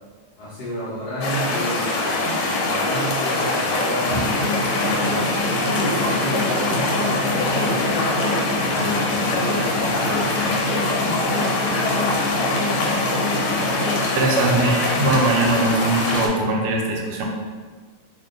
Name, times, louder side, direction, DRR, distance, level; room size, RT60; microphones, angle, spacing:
voice 1, 0.4-4.4 4.8-8.2 8.6-10.8, equal, 65° left, -8 dB, 1.0 m, -31 dB
sound 1, 1.2-16.3, left 2 dB, 85° left, 1.5 m, -23 dB
sound 2, 4.1-14.0, left 1 dB, 70° right, 1.5 m, -27 dB
voice 2, 14.1-17.2, right 2 dB, 90° right, 0 dB, 1.6 m, -21 dB
3.3 x 2.7 x 3.7 m, 1.5 s
omnidirectional pair, 2.4 m